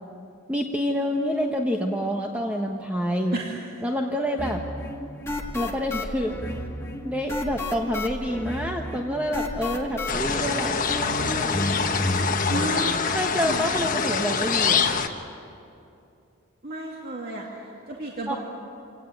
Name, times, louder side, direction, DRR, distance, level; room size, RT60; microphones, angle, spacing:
voice 1, 0.5-3.4 3.8-4.6 5.5-6.3 7.0-10.8 13.1-14.9 18.3-18.4, equal, 5° right, 1 dB, 1.2 m, -27 dB
sound 1, 4.4-12.6, left 1 dB, 15° left, 1.9 m, -31 dB
sound 2, 10.1-15.1, left 5 dB, 40° left, 1.4 m, -25 dB
voice 2, 12.5-13.6 16.6-18.4, right 1 dB, 50° right, -2 dB, 2.4 m, -32 dB
27.0 x 18.0 x 9.8 m, 2.6 s
head